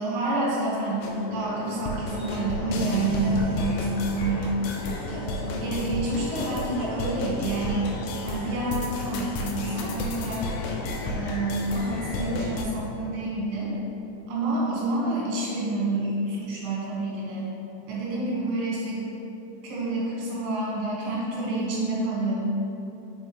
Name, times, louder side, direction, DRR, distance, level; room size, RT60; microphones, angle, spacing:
voice 1, 0.0-4.6 5.1-7.9 8.3-10.5 11.0-13.7 14.3-17.5 17.9-19.1 19.6-22.4, right 2 dB, 80° right, -6 dB, 3.5 m, -28 dB
sound 1, 1.0-12.7, left 2 dB, 80° left, 2.3 m, -32 dB
6.1 x 5.3 x 3.1 m, 2.9 s
omnidirectional pair, 5.0 m